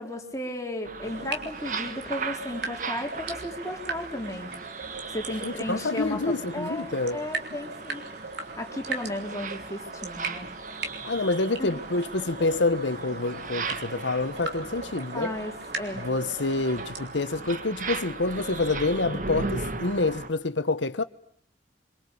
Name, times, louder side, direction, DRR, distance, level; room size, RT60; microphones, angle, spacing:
voice 1, 0.0-4.5 5.1-8.1 8.6-10.5 11.6-11.8 15.1-16.1, left 1 dB, 15° left, 3.8 m, -34 dB
sound 1, 0.9-20.3, right 4 dB, 45° right, 1.4 m, -37 dB
sound 2, 1.0-17.1, right 3 dB, 65° right, 3.6 m, -39 dB
voice 2, 5.4-7.2 11.0-15.3 15.9-21.0, left 3 dB, 85° left, 1.2 m, -27 dB
25.0 x 24.0 x 8.5 m
head